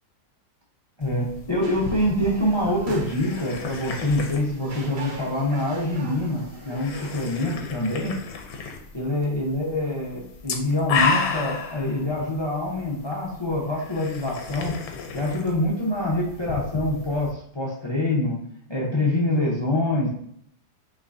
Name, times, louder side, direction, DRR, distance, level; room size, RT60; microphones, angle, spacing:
sound 1, 1.0-17.3, left 5 dB, 65° left, 1.1 m, -33 dB
voice 1, 1.0-8.1 8.9-14.8 15.1-18.4 18.7-20.1, left 1 dB, 35° left, -4 dB, 0.4 m, -25 dB
sound 2, 1.6-7.3, right 2 dB, 50° right, 0.6 m, -41 dB
5.7 x 3.2 x 2.6 m, 0.67 s
omnidirectional pair, 1.8 m